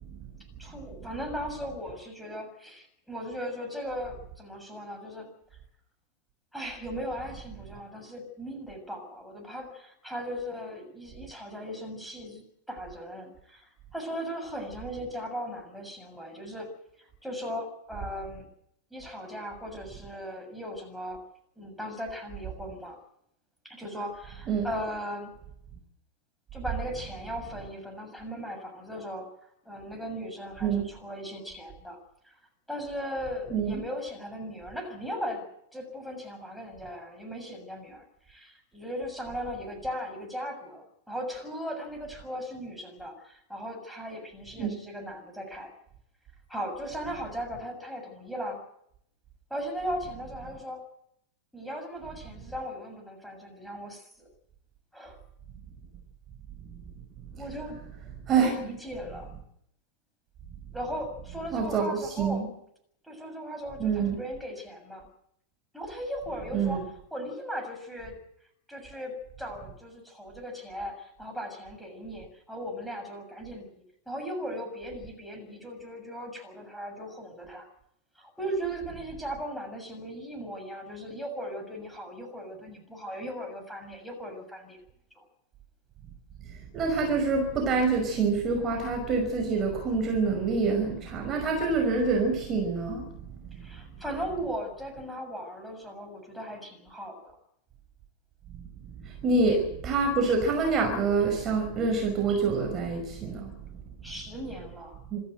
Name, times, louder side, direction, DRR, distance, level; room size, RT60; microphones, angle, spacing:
voice 1, 0.6-5.3 6.5-16.7 17.0-18.5 18.9-21.2 21.6-23.0 23.6-25.3 26.5-32.0 32.2-32.4 32.7-45.7 46.5-48.6 49.5-50.9 51.5-54.3 54.9-55.2 57.3-57.8 58.4-59.3 60.7-62.5 63.0-65.1 65.7-66.8 67.1-68.2 68.7-73.7 74.1-77.7 78.2-84.8 85.2-85.3 93.5-97.4 104.0-105.0, equal, ahead, 3 dB, 7.0 m, -38 dB
voice 2, 33.5-33.8 44.6-44.7 56.7-56.8 58.3-58.5 61.5-62.5 63.8-64.2 66.5-66.8 86.5-93.6 98.5-103.7 105.1-105.2, right 4 dB, 30° right, 3 dB, 5.5 m, -27 dB
26.5 x 13.0 x 9.3 m, 0.73 s
figure-of-eight pair, 90°, 0 cm